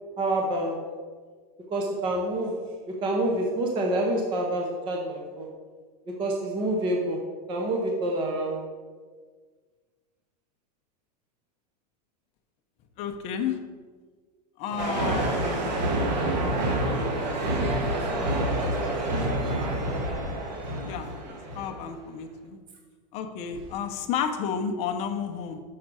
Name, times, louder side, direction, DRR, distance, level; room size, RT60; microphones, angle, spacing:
voice 1, 0.2-0.8 1.7-2.6 2.9-5.5 6.2-7.2 7.5-8.7 14.7-14.8, right 1 dB, 25° right, 0 dB, 0.8 m, -27 dB
voice 2, 13.0-13.6 14.6-16.1 19.1-19.5 20.2-20.4 20.8-22.6 23.1-25.6, left 7 dB, 30° left, 5 dB, 0.7 m, -32 dB
sound 1, 14.8-21.8, right 1 dB, 90° right, 2.0 m, -27 dB
6.4 x 5.8 x 6.1 m, 1.5 s
supercardioid pair, 165°, 21 cm